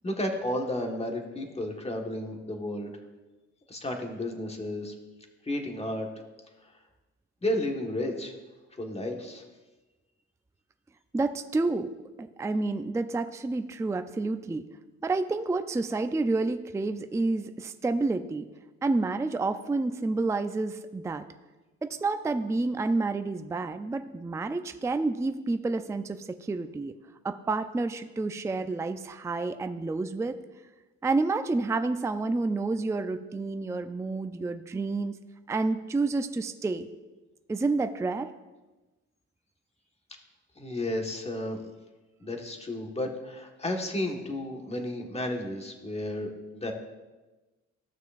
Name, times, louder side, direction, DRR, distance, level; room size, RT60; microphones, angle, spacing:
voice 1, 0.0-2.9 3.7-4.9 5.4-6.1 7.4-8.3 8.8-9.4 40.6-41.6 42.2-46.7, left 1 dB, 20° left, 2 dB, 1.5 m, -32 dB
voice 2, 11.1-11.9 12.2-14.6 15.0-18.4 18.8-21.2 21.8-27.0 27.2-30.4 31.0-35.2 35.5-36.9 37.5-38.3, right 3 dB, 10° right, 8 dB, 0.4 m, -29 dB
15.5 x 6.2 x 2.5 m, 1.1 s
cardioid pair, 90°, 30 cm